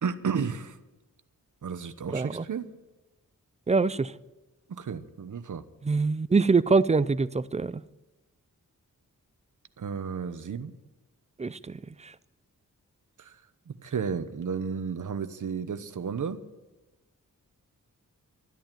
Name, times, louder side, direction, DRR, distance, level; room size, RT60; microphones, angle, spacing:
voice 1, 0.0-0.8 1.6-2.7 4.7-5.6 9.8-10.7 13.2-13.3 13.7-16.4, right 6 dB, 65° right, 1.1 m, -33 dB
voice 2, 2.1-2.4 3.7-4.1 5.8-7.8 11.4-11.8, right 4 dB, 20° right, 0.4 m, -24 dB
12.5 x 11.5 x 9.1 m
wide cardioid pair, 115°, 33 cm